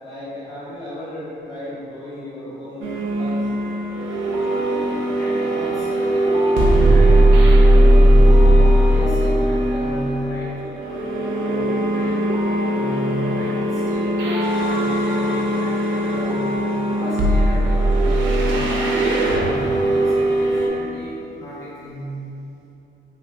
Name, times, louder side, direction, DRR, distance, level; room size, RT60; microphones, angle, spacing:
voice 1, 0.0-2.9 3.2-3.5, left 1 dB, 65° left, -10 dB, 1.3 m, -34 dB
sound 1, 2.8-20.7, right 1 dB, 80° right, 0.5 m, -18 dB
sound 2, 4.2-20.2, equal, 15° right, 0.4 m, -32 dB
voice 2, 5.1-7.3 7.6-8.5 8.8-10.6 11.4-12.3 12.6-14.2 14.6-16.6 16.9-18.8 19.3-22.2, right 1 dB, 15° left, -9 dB, 0.7 m, -34 dB
3.0 x 2.9 x 2.4 m, 2.9 s
cardioid pair, 90°, 20 cm